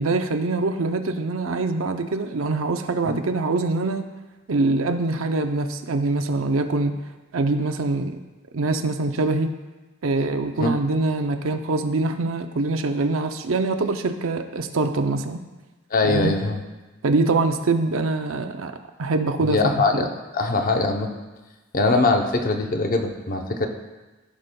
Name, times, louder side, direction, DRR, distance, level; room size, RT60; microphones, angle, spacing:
voice 1, 0.0-4.1 4.5-6.9 7.3-8.2 8.5-9.6 10.0-15.4 16.0-16.4 17.0-20.1, right 3 dB, 70° right, 7 dB, 0.6 m, -24 dB
voice 2, 15.9-16.6 19.4-20.1 20.3-21.1 21.7-23.7, left 3 dB, 45° left, 4 dB, 0.7 m, -22 dB
15.0 x 5.1 x 2.2 m, 1.2 s
head